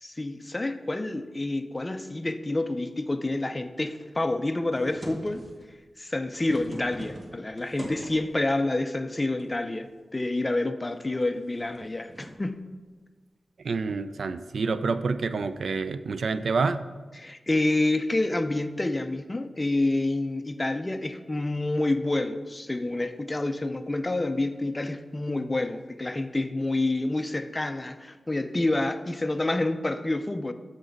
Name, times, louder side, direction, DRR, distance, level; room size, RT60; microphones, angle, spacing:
voice 1, 0.0-5.5 6.0-12.7 17.2-30.5, left 2 dB, 20° left, 10 dB, 0.4 m, -28 dB
sound 1, 4.7-5.7 6.2-8.4 9.4-9.9 10.3-10.4 11.0-12.5 15.3-15.6, right 1 dB, 50° right, 1.3 m, -43 dB
voice 2, 13.6-16.8, right 4 dB, 70° right, 12 dB, 0.3 m, -28 dB
6.7 x 6.3 x 5.1 m, 1.4 s
wide cardioid pair, 110°, 0 cm